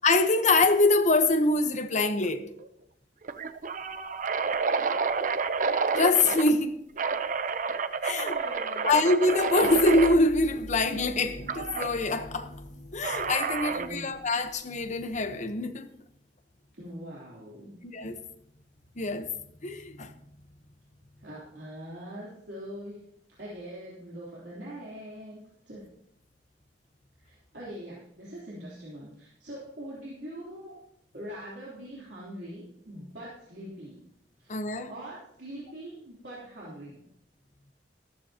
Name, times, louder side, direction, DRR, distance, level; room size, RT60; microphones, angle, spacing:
voice 1, 0.0-2.4 6.0-6.8 8.0-8.3 8.8-15.9 17.8-18.2 19.0-19.3 19.6-20.1 34.5-34.9, left 2 dB, 45° left, 1.0 m, -24 dB
sound 1, 2.0-2.3 2.6-2.7 3.2-6.5 7.0-10.2 11.5-11.9 13.0-14.0, right 5 dB, 50° right, 0.6 m, -29 dB
voice 2, 8.1-9.0 13.7-14.3 16.7-17.7 21.2-23.0 23.4-25.4 25.7-25.8 27.2-30.8 31.1-34.0 34.4-34.6 34.9-37.0, right 1 dB, 75° right, 3.4 m, -42 dB
sound 2, 9.3-15.2, left 1 dB, 80° left, 3.6 m, -46 dB
14.0 x 13.5 x 2.9 m
head